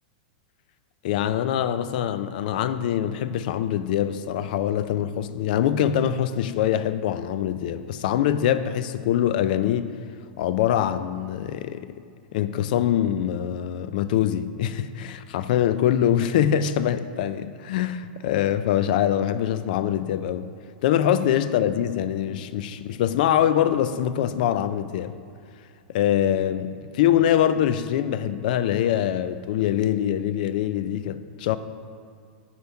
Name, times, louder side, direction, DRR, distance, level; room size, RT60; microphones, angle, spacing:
voice 1, 1.0-9.9 10.4-11.9 12.3-20.5 20.8-25.1 25.9-31.6, left 10 dB, 60° left, 0.3 m, -24 dB
7.0 x 4.4 x 4.4 m
supercardioid pair, 140°, 5 cm